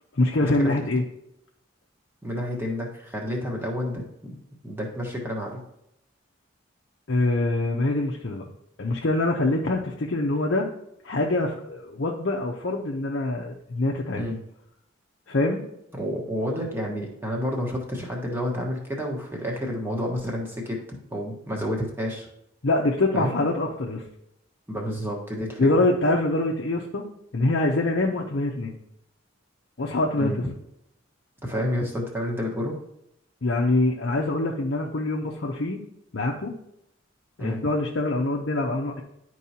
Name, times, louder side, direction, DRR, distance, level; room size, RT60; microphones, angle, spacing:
voice 1, 0.1-1.0 7.1-8.4 8.8-10.7 11.0-14.3 15.3-15.6 22.6-24.0 25.6-27.0 27.3-28.7 29.8-30.3 33.4-35.8 36.1-36.5 37.4-39.0, left 2 dB, 55° left, -1 dB, 0.6 m, -24 dB
voice 2, 2.2-4.4 4.6-5.6 14.2-14.4 16.0-20.8 21.1-22.3 23.1-23.4 24.7-25.7 30.2-30.5 31.4-32.8 37.4-37.6, equal, 10° right, -1 dB, 1.2 m, -30 dB
10.5 x 4.6 x 2.8 m, 0.79 s
head